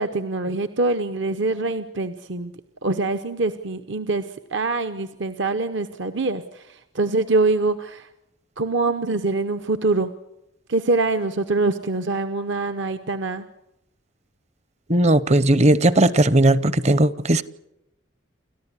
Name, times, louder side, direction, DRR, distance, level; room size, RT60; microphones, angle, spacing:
voice 1, 0.0-2.5 2.8-4.2 4.5-8.1 8.6-10.1 10.7-13.4, right 3 dB, 65° right, 1.0 m, -24 dB
voice 2, 14.9-17.4, right 1 dB, 35° right, 0.8 m, -17 dB
29.0 x 14.0 x 9.9 m
head